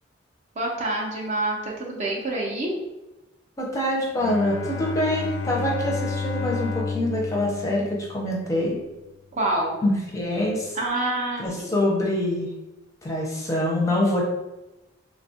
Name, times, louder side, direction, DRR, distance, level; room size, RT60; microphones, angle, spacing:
voice 1, 0.6-2.7 9.3-9.8 10.7-11.7, right 2 dB, 40° right, -2 dB, 0.6 m, -27 dB
voice 2, 3.6-8.8 9.8-10.8 11.4-12.5 13.0-14.3, left 1 dB, 15° left, -3 dB, 0.5 m, -25 dB
Bowed string instrument, 4.2-8.6, left 5 dB, 75° left, 0.4 m, -31 dB
3.3 x 2.3 x 2.7 m, 1.0 s
head